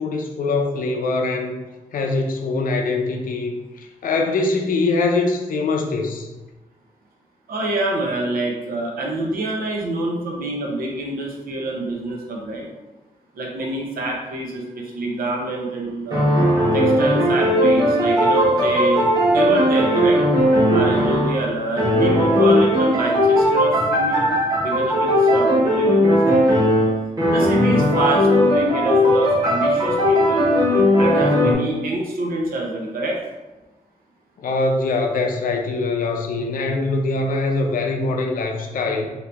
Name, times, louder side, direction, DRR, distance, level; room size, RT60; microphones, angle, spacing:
voice 1, 0.0-1.6 1.9-6.3 34.4-39.1, left 3 dB, 70° left, 2 dB, 0.5 m, -23 dB
voice 2, 7.5-12.6 13.3-16.3 16.7-20.2 20.7-24.3 24.6-26.4 27.3-30.5 31.0-33.2, right 2 dB, 90° right, -1 dB, 0.8 m, -26 dB
sound 1, 16.1-21.5 21.8-31.5, equal, 25° right, 1.0 m, -17 dB
2.9 x 2.7 x 3.3 m, 1.1 s
wide cardioid pair, 125°, 15 cm